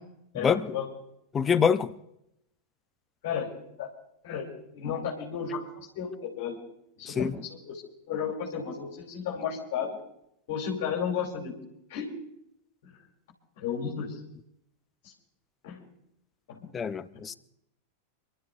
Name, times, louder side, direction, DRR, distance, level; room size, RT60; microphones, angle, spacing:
voice 1, 0.3-0.9 3.2-3.9 4.2-6.6 7.0-7.8 8.1-10.0 10.5-11.6 11.9-12.1 12.8-12.9 13.6-14.2 15.0-15.1 15.6-15.8 16.5-16.7 17.1-17.2, left 7 dB, 50° left, 3.0 m, -33 dB
voice 2, 1.3-1.9 7.1-7.3 16.7-17.3, left 6 dB, 20° left, 0.6 m, -25 dB
28.5 x 12.5 x 2.7 m
figure-of-eight pair, 90°, 0 cm